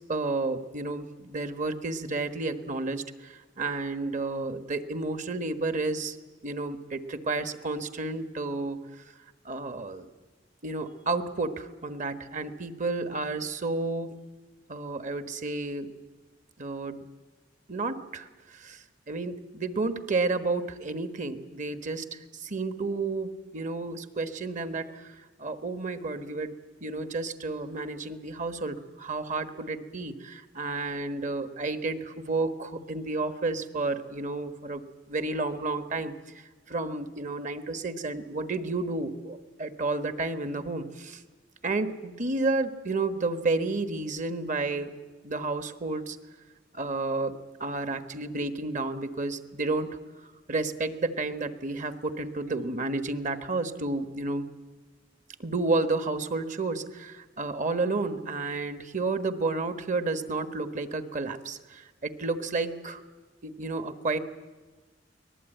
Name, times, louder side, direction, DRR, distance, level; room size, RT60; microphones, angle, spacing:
voice 1, 0.1-6.2 6.4-8.8 9.4-10.1 10.6-14.1 14.7-15.9 16.6-17.0 17.7-26.5 26.8-36.1 36.7-41.2 41.6-44.9 45.2-46.2 46.7-47.3 47.6-50.0 50.5-54.5 55.4-63.0 63.4-64.2, right 3 dB, 45° right, 10 dB, 1.3 m, -31 dB
24.0 x 19.0 x 9.1 m, 1.3 s
head